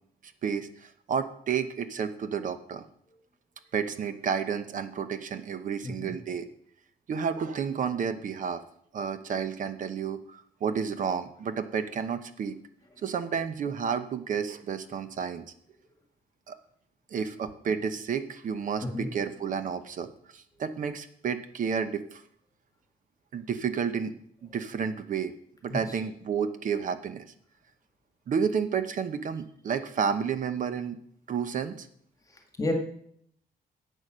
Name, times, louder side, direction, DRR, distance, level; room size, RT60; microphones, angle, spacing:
voice 1, 0.4-2.8 3.7-6.5 7.1-8.6 8.9-12.6 13.0-15.4 16.5-16.6 17.1-22.2 23.3-24.1 24.4-25.3 25.6-27.2 28.3-31.0 31.3-31.9, right 6 dB, 55° right, 11 dB, 0.8 m, -31 dB
voice 2, 5.8-6.1 18.8-19.1 25.7-25.8 32.6-32.7, left 2 dB, 20° left, 3 dB, 1.7 m, -31 dB
11.0 x 8.3 x 6.2 m, 0.67 s
wide cardioid pair, 180°, 16 cm